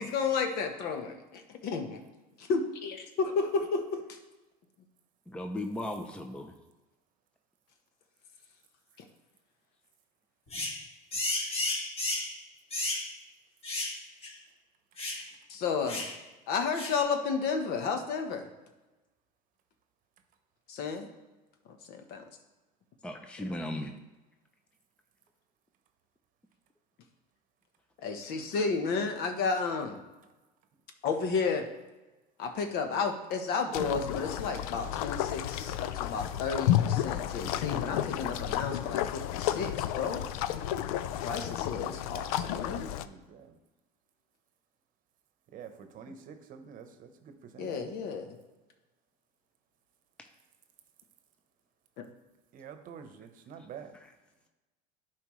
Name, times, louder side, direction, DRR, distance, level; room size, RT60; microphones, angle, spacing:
voice 1, 0.0-2.0 2.5-4.0 15.5-16.1 16.5-18.5 20.7-21.1 21.7-22.2 28.0-30.0 31.0-31.7 32.4-40.2 41.2-42.9 47.6-48.4 52.0-52.1, left 5 dB, 60° left, 6 dB, 1.1 m, -32 dB
voice 2, 5.3-6.5 23.0-23.9, left 1 dB, 5° left, 5 dB, 0.6 m, -36 dB
sound 1, 10.5-10.8 11.1-12.3 12.7-13.1 13.6-14.0 14.2-14.3 15.0-15.2 15.9-16.1 16.7-17.0, left 2 dB, 30° left, 1.6 m, -33 dB
sound 2, 33.7-43.1, left 12 dB, 85° left, 0.4 m, -32 dB
voice 3, 42.3-43.6 45.5-47.8 52.5-54.0, right 7 dB, 50° right, 8 dB, 0.9 m, -48 dB
11.0 x 4.6 x 3.2 m, 1.1 s
supercardioid pair, 115°, 18 cm